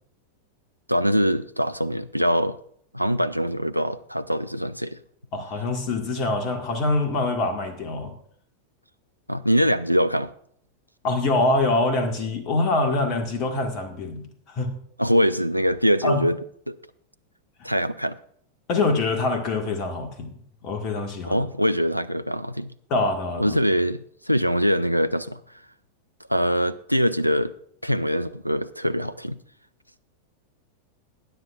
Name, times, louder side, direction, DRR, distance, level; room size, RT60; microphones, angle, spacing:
voice 1, 0.9-2.6 2.9-5.0 9.3-10.3 15.0-16.4 16.7-16.8 17.6-18.2 21.3-22.7 23.4-24.0 24.3-25.4 26.3-27.5 27.8-29.4, equal, 90° right, 0.4 m, -23 dB
voice 2, 5.3-8.1 11.0-14.7 16.0-16.2 17.6-17.7 18.7-21.4 22.9-23.6, left 2 dB, 40° left, 1.6 m, -25 dB
19.5 x 9.7 x 2.4 m
figure-of-eight pair, 90°, 0 cm